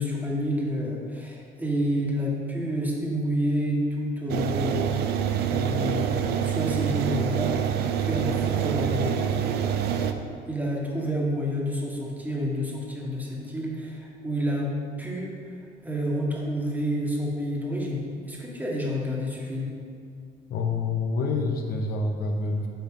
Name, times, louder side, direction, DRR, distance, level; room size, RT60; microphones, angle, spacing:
voice 1, 0.0-4.8 5.4-10.1 10.5-14.7 15.0-15.6 15.8-19.7, equal, 10° right, -3 dB, 1.5 m, -29 dB
sound 1, 4.3-10.1, right 9 dB, 70° right, 0.5 m, -26 dB
voice 2, 20.5-22.7, left 3 dB, 65° left, 2 dB, 0.8 m, -27 dB
8.6 x 5.7 x 3.7 m, 2.4 s
cardioid pair, 110°, 17 cm